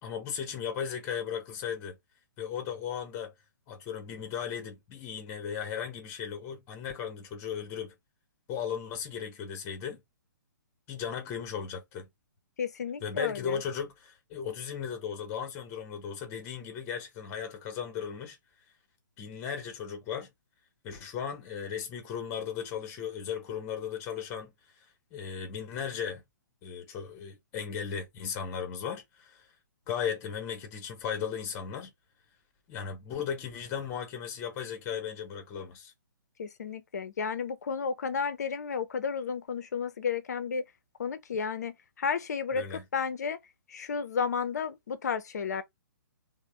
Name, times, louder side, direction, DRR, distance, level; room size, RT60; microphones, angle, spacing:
voice 1, 0.0-2.0 2.4-3.3 3.7-7.9 8.5-10.0 10.9-12.1 13.0-18.4 19.2-20.3 20.8-24.5 25.1-26.2 26.6-29.5 29.9-31.9 32.7-35.9 42.5-42.8, left 7 dB, 25° left, 0.8 m, -36 dB
voice 2, 12.6-13.6 36.4-40.6 41.0-43.4 43.7-45.6, left 6 dB, 55° left, 0.6 m, -32 dB
3.3 x 2.1 x 3.2 m
figure-of-eight pair, 125°, 11 cm